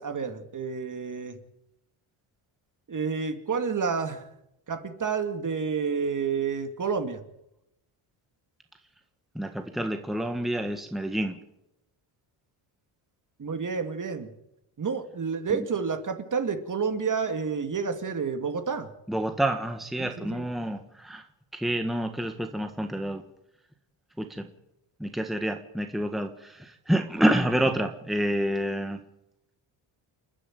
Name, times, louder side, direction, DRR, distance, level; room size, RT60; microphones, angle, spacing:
voice 1, 0.0-1.4 2.9-4.3 4.7-7.2 13.4-14.3 14.8-18.9 20.0-20.4, right 5 dB, 40° right, 7 dB, 2.4 m, -29 dB
voice 2, 9.3-11.4 19.1-21.2 21.5-23.2 24.2-24.5 25.0-29.0, right 1 dB, ahead, 6 dB, 1.6 m, -28 dB
28.5 x 10.0 x 9.3 m, 0.85 s
cardioid pair, 100°, 49 cm